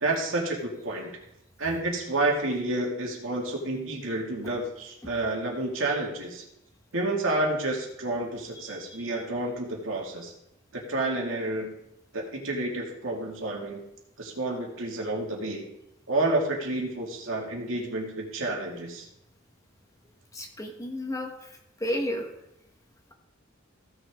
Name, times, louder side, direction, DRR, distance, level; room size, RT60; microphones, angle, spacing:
voice 1, 0.0-1.2 1.6-6.4 6.9-10.3 10.7-11.7 12.1-13.8 14.2-15.7 16.1-19.1, right 2 dB, 80° right, -1 dB, 2.3 m, -30 dB
voice 2, 20.3-21.3 21.8-22.3, left 1 dB, 15° left, 2 dB, 1.3 m, -31 dB
15.5 x 6.4 x 3.7 m, 0.83 s
head